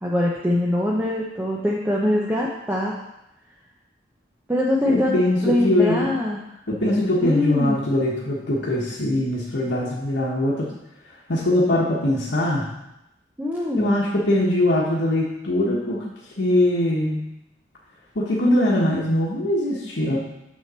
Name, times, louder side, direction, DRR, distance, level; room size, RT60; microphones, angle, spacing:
voice 1, 0.0-3.0 4.5-5.2 5.4-6.4 7.2-7.8 13.4-14.0, left 1 dB, 10° right, -3 dB, 0.7 m, -23 dB
voice 2, 4.8-6.2 6.7-10.7 11.3-12.7 13.8-16.0 16.4-17.2 18.1-20.2, left 1 dB, 90° left, -5 dB, 1.3 m, -22 dB
6.7 x 6.4 x 4.4 m, 0.89 s
head